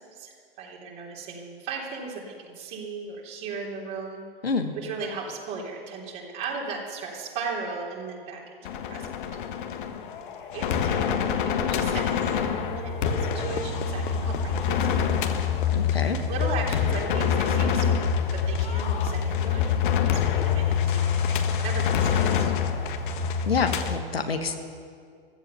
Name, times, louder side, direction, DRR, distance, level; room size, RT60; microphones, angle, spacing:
voice 1, 0.0-4.2 4.8-8.5 8.9-9.1 10.2-11.0 11.4-15.2 16.3-18.0 18.3-19.6 19.9-22.5, right 4 dB, 45° right, -3 dB, 3.5 m, -36 dB
voice 2, 4.4-4.7 15.7-16.2 23.4-24.5, left 4 dB, 85° left, 6 dB, 1.5 m, -27 dB
sound 1, 8.6-24.0, left 7 dB, 55° left, 1.4 m, -26 dB
15.5 x 13.5 x 6.9 m, 2.2 s
figure-of-eight pair, 105°, 29 cm